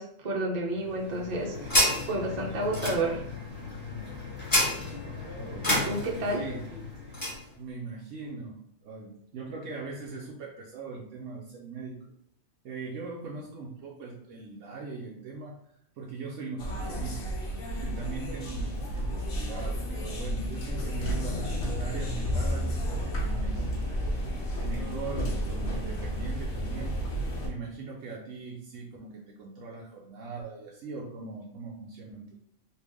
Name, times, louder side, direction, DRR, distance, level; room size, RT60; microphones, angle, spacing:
voice 1, 0.0-1.7 2.1-3.2 5.8-6.4, right 2 dB, 40° right, -2 dB, 0.7 m, -30 dB
sound 1, 0.8-7.4, left 1 dB, 15° left, 1.2 m, -31 dB
voice 2, 5.4-6.7 7.6-12.0 12.6-15.6 16.0-17.4 17.8-26.9 27.4-32.4, right 4 dB, 80° right, -2 dB, 0.9 m, -40 dB
sound 2, 16.6-27.5, equal, 65° left, 1.0 m, -31 dB
3.3 x 2.4 x 3.4 m, 0.71 s
omnidirectional pair, 1.3 m